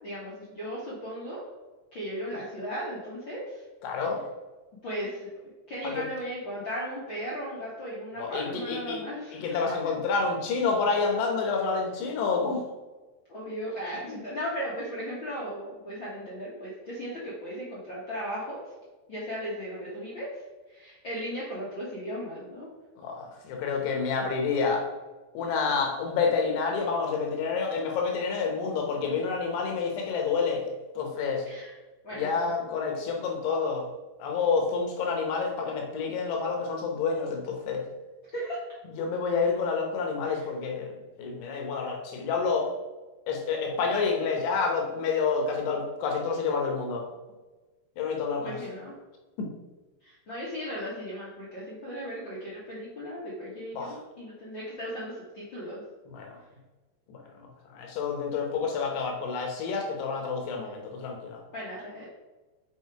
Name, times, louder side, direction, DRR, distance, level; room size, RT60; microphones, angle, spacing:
voice 1, 0.0-1.4 1.9-3.6 4.8-5.3 5.7-9.7 13.3-18.6 19.1-20.3 20.7-22.7 31.4-31.7 32.0-32.3 38.3-38.6 40.2-40.4 48.4-48.9 50.0-55.8 61.5-62.0, equal, 60° left, -7 dB, 1.2 m, -36 dB
voice 2, 3.8-4.3 5.8-6.1 8.1-9.0 9.3-12.7 14.1-14.2 23.0-24.9 25.3-30.7 31.0-31.5 32.1-33.9 34.2-37.8 38.9-40.9 41.2-42.7 43.3-47.1 48.0-48.6 49.4-49.5 53.7-54.0 56.1-56.4 57.1-61.4, left 5 dB, 80° left, 2 dB, 3.4 m, -29 dB
7.9 x 5.0 x 4.8 m, 1.2 s
omnidirectional pair, 4.7 m